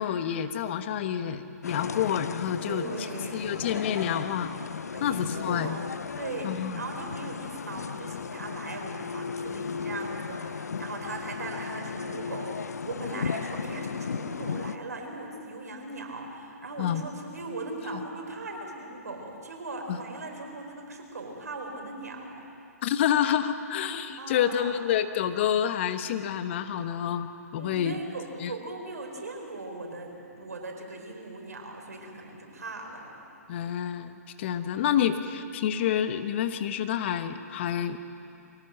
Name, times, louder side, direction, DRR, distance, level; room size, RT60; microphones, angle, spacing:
voice 1, 0.0-3.1 3.3-4.5 5.0-5.8 6.4-6.8 16.8-17.0 17.9-18.0 19.9-20.0 22.8-28.0 28.4-28.5 33.5-38.0, left 9 dB, 45° left, 10 dB, 1.2 m, -28 dB
sound 1, 1.6-14.8, left 6 dB, 75° left, 0.6 m, -35 dB
voice 2, 2.7-3.9 4.9-5.9 6.2-22.3 24.2-24.8 27.5-33.1 34.6-35.0, right 2 dB, 70° right, 2 dB, 4.9 m, -39 dB
23.5 x 17.5 x 7.6 m, 2.6 s
figure-of-eight pair, 125°, 9 cm